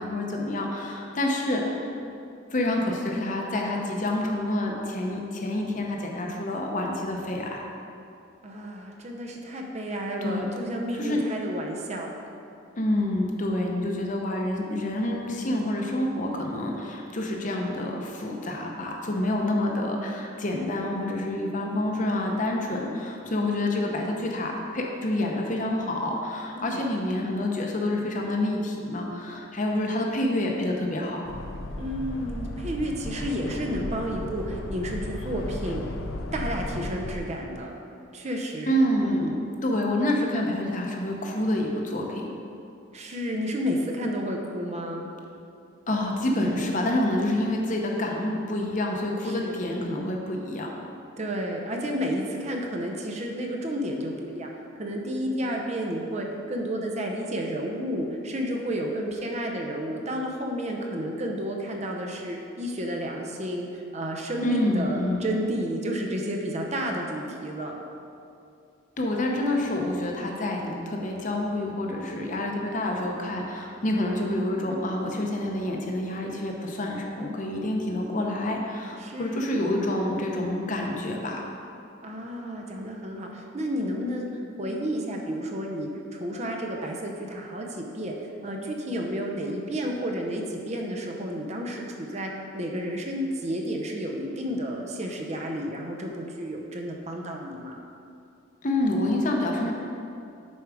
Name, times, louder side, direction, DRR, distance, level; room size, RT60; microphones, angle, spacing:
voice 1, 0.0-1.9 2.5-7.6 10.2-10.4 10.9-11.2 12.8-31.2 38.7-39.3 39.6-42.3 45.9-50.7 64.4-65.3 69.0-81.5 98.6-99.7, left 1 dB, 40° left, 1 dB, 0.8 m, -28 dB
voice 2, 8.4-12.1 26.6-26.9 31.8-35.8 36.3-37.8 38.1-39.3 42.9-45.1 49.2-49.6 51.2-54.5 54.8-67.8 79.0-79.6 82.0-88.1 88.4-97.8, equal, 35° right, 1 dB, 0.6 m, -31 dB
sound 1, 31.2-37.2, left 2 dB, 85° left, 0.6 m, -35 dB
7.1 x 4.7 x 4.8 m, 2.6 s
head